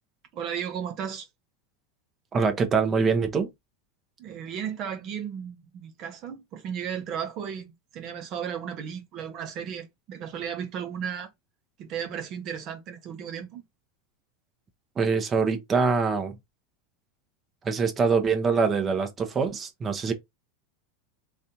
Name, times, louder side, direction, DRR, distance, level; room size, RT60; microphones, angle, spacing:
voice 1, 0.3-1.3 4.2-11.3 11.8-13.6, right 8 dB, 45° right, 1.2 m, -35 dB
voice 2, 2.3-3.5 15.0-16.4 17.6-20.1, right 5 dB, 30° right, 1.2 m, -24 dB
3.9 x 3.2 x 2.9 m
hypercardioid pair, 100°, 0 cm